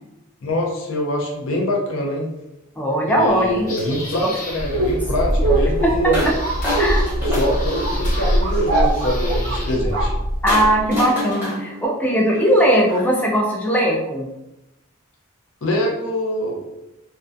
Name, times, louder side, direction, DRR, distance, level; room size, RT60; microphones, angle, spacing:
voice 1, 0.4-2.3 3.1-6.3 7.2-10.1 15.6-16.6, left 1 dB, 60° left, 0 dB, 0.5 m, -24 dB
voice 2, 2.8-3.7 4.2-4.3 5.8-5.9 6.2-6.3 6.8-7.0 10.4-14.3, equal, 10° left, -2 dB, 0.3 m, -19 dB
sound 1, 3.3-9.7, left 1 dB, 35° left, 0.9 m, -35 dB
sound 2, 4.6-10.8, right 1 dB, 65° right, 0.5 m, -21 dB
sound 3, 6.1-6.4 6.6-8.2 10.5-13.2, left 1 dB, 10° right, 0.7 m, -28 dB
2.2 x 2.2 x 2.5 m, 0.90 s
head